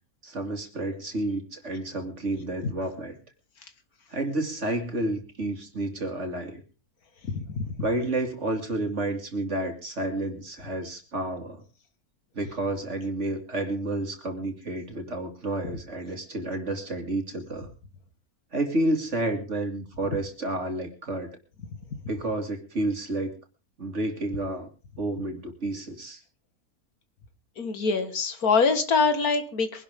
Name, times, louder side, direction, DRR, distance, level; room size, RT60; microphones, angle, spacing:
voice 1, 0.2-3.1 4.1-6.6 7.8-11.6 12.3-17.7 18.5-21.4 22.1-23.3 23.8-24.7 25.0-26.2, right 2 dB, 50° right, 5 dB, 2.7 m, -30 dB
voice 2, 27.6-29.8, left 4 dB, 75° left, 8 dB, 2.1 m, -24 dB
23.0 x 11.5 x 3.6 m, 0.34 s
omnidirectional pair, 1.6 m